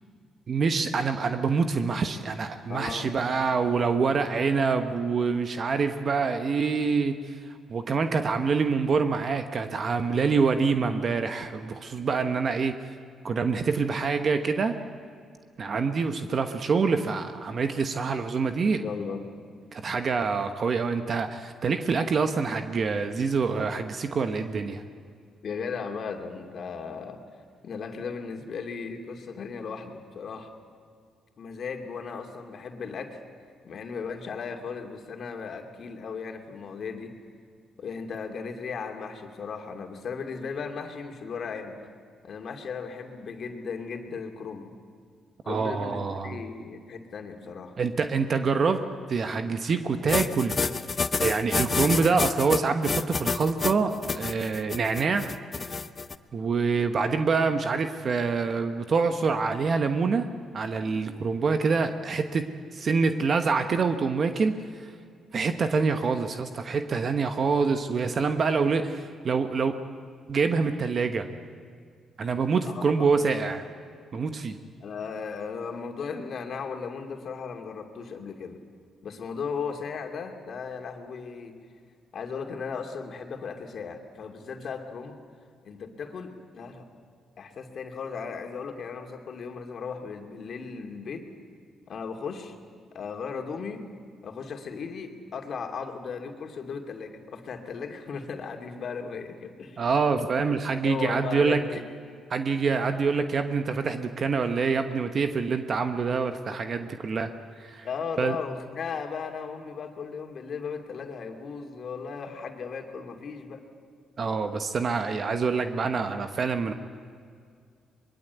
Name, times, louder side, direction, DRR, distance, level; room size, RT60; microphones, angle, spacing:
voice 1, 0.5-7.4 7.7-12.8 13.2-14.8 15.6-18.8 19.7-24.8 45.5-46.4 47.8-48.8 49.1-50.6 51.2-55.3 56.3-62.5 62.7-64.5 65.3-69.8 70.3-71.3 72.2-73.6 74.1-74.6 99.8-101.6 102.3-107.3 107.6-107.9 108.2-108.4 114.2-116.7, right 5 dB, 45° right, 7 dB, 1.2 m, -26 dB
voice 2, 2.7-3.1 18.6-19.2 25.4-27.2 27.6-30.5 31.4-33.2 33.6-37.1 37.8-41.8 42.2-44.7 45.4-47.7 72.6-73.2 74.8-78.6 79.0-81.5 82.1-85.2 85.7-86.9 87.4-91.3 91.9-92.6 92.9-93.8 94.2-99.9 100.7-101.9 107.8-113.6, left 5 dB, 55° left, 4 dB, 2.7 m, -36 dB
sound 1, 50.1-56.1, left 4 dB, 35° left, 0.9 m, -28 dB
23.0 x 22.0 x 8.2 m, 2.2 s
cardioid pair, 90°, 0 cm